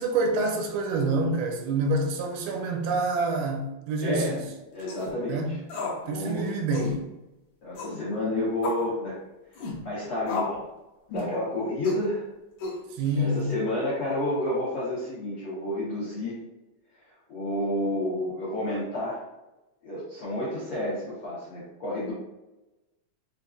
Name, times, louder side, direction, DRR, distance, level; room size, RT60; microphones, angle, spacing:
voice 1, 0.0-4.5 5.3-5.6 6.1-7.1 12.9-13.5, right 2 dB, 85° right, 3 dB, 2.5 m, -27 dB
voice 2, 4.0-4.4 4.7-5.6 6.0-6.5 7.6-9.2 9.8-10.5 11.1-12.3 13.2-16.4 17.3-19.2 19.8-22.1, left 1 dB, 90° left, -9 dB, 1.2 m, -30 dB
sound 1, 4.8-5.1 5.7-6.0 6.3-6.4 6.7-7.0 7.7-8.0 8.6-8.9 9.5-9.8 10.3-10.6 11.1-11.4 11.8-12.0 12.6-13.1, left 3 dB, 75° left, 1.7 m, -33 dB
6.6 x 2.5 x 2.4 m, 0.98 s
omnidirectional pair, 4.4 m